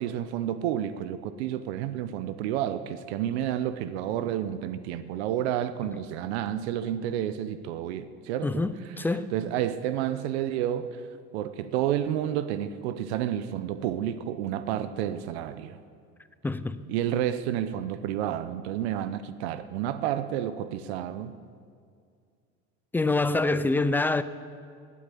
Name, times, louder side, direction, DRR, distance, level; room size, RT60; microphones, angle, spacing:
voice 1, 0.0-8.6 9.3-11.0 11.3-15.8 16.9-21.3, right 11 dB, 80° right, 0.9 m, -30 dB
voice 2, 8.4-9.3 16.4-16.8 22.9-24.2, left 3 dB, 5° left, 0.3 m, -26 dB
18.5 x 8.6 x 8.5 m
supercardioid pair, 135°, 32 cm